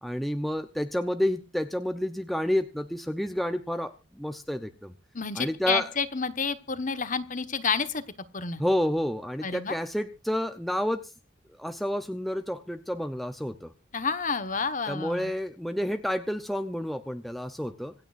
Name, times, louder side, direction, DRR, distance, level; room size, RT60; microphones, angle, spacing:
voice 1, 0.0-4.9 5.4-5.9 8.6-11.1 11.6-13.7 14.9-17.9, equal, ahead, 7 dB, 0.7 m, -30 dB
voice 2, 5.1-8.0 8.3-8.6 9.4-9.8 13.9-15.3, left 5 dB, 40° left, 11 dB, 1.3 m, -29 dB
26.0 x 9.0 x 2.6 m, 0.29 s
head